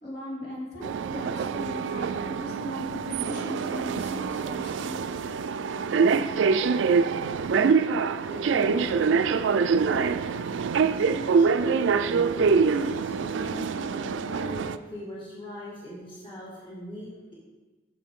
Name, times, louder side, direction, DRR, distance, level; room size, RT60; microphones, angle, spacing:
voice 1, 0.0-5.1, equal, 60° left, -6 dB, 2.6 m, -38 dB
sound 1, 0.8-14.8, right 5 dB, 85° right, 0.4 m, -25 dB
voice 2, 7.5-7.8 8.3-9.2 9.9-10.2 11.1-17.3, equal, 30° left, -7 dB, 2.0 m, -40 dB
9.2 x 6.7 x 3.7 m, 1.3 s
head